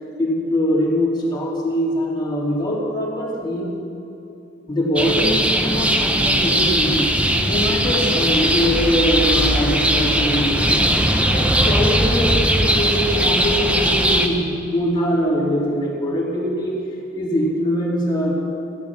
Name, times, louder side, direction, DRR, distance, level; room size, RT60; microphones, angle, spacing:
voice 1, 0.2-3.7 4.7-7.1 7.4-10.9 11.2-16.8 17.1-18.3, equal, 25° left, -5 dB, 3.0 m, -22 dB
sound 1, 5.0-14.3, right 1 dB, 5° right, 0.8 m, -19 dB
14.5 x 10.0 x 5.9 m, 2.8 s
head